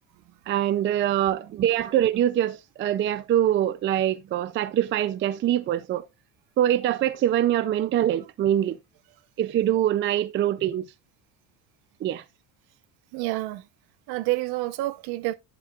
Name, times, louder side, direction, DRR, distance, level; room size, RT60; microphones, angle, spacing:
voice 1, 0.5-6.0 6.6-8.8 9.4-10.9 12.0-12.2, right 11 dB, 30° right, 0.5 m, -24 dB
voice 2, 13.1-13.6 14.1-15.3, right 18 dB, 70° right, 1.1 m, -28 dB
10.5 x 8.1 x 2.4 m
cardioid pair, 170°, 40 cm